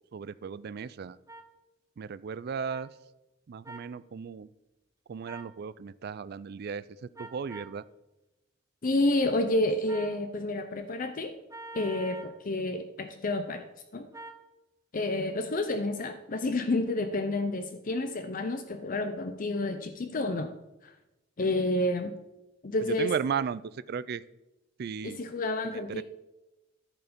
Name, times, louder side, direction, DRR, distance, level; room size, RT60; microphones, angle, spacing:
voice 1, 0.1-1.2 2.0-2.9 3.5-4.5 5.1-7.8 22.8-24.2 24.8-25.2 25.7-26.0, right 6 dB, 55° right, 17 dB, 0.4 m, -35 dB
sound 1, 1.3-1.4 2.7-2.8 3.6-3.9 5.2-5.5 7.1-7.8 9.9-10.2 11.5-12.4 14.1-14.4, right 2 dB, 15° right, 0.7 m, -44 dB
voice 2, 8.8-11.3 11.7-13.6 13.9-14.1 14.9-20.5 20.8-20.9 21.4-22.1 22.6-23.1 25.0-26.0, left 2 dB, 45° left, 8 dB, 0.5 m, -29 dB
14.0 x 4.7 x 5.1 m, 0.99 s
head